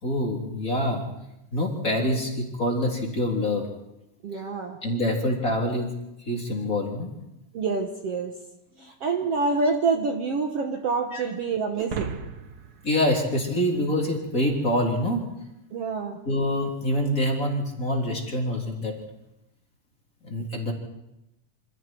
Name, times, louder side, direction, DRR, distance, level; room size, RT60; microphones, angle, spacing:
voice 1, 0.0-1.0 1.5-3.7 4.3-4.4 4.8-5.9 6.3-7.1 9.6-9.7 11.1-11.2 12.8-15.2 16.3-19.0 20.2-20.7, left 1 dB, 25° left, 0 dB, 3.9 m, -26 dB
voice 2, 4.2-4.8 7.5-8.3 8.8-12.2 15.7-16.2, right 4 dB, 55° right, 3 dB, 2.1 m, -27 dB
sound 1, 11.7-14.3, right 5 dB, 75° right, 0.8 m, -37 dB
27.5 x 26.5 x 4.6 m, 0.88 s
omnidirectional pair, 3.7 m